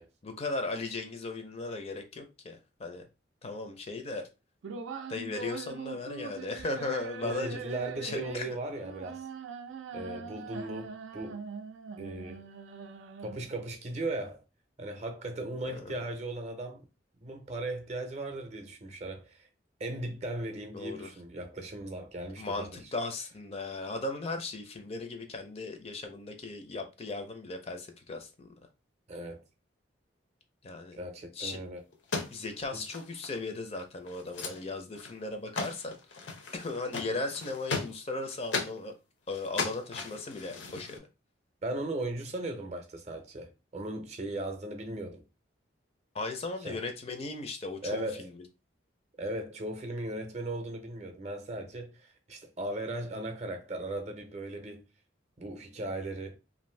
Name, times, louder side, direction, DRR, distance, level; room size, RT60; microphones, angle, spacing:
voice 1, 0.2-3.0 3.4-4.3 5.1-7.6 8.0-8.5 15.7-16.0 20.7-21.1 22.4-28.5 30.6-31.0 31.3-31.6 32.3-36.3 36.5-38.9 39.3-41.1 46.1-48.5, left 3 dB, 35° left, 0.5 m, -37 dB
sound 1, 4.6-13.6, right 4 dB, 85° right, 0.4 m, -42 dB
voice 2, 7.2-9.3 9.9-11.4 12.0-12.5 13.2-14.4 14.8-16.8 17.2-19.5 19.8-22.7 29.1-29.4 31.0-31.8 32.7-32.8 41.6-45.2 46.6-46.8 47.8-48.3 49.2-54.8 55.4-56.4, right 2 dB, 35° right, 0.6 m, -37 dB
sound 2, 31.9-33.5 33.7-33.8 34.1-34.6 34.9-35.3 35.6-38.8 39.3-41.0, left 4 dB, 80° left, 0.7 m, -37 dB
2.6 x 2.5 x 3.1 m
head